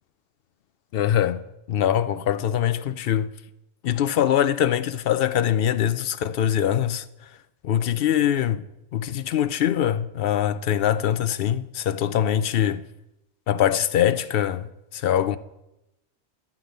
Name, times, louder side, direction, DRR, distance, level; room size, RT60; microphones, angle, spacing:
voice 1, 0.9-3.3 3.8-7.0 7.6-8.6 8.9-12.8 13.5-15.4, left 10 dB, 60° left, 0.6 m, -23 dB
11.5 x 5.9 x 8.9 m
omnidirectional pair, 1.3 m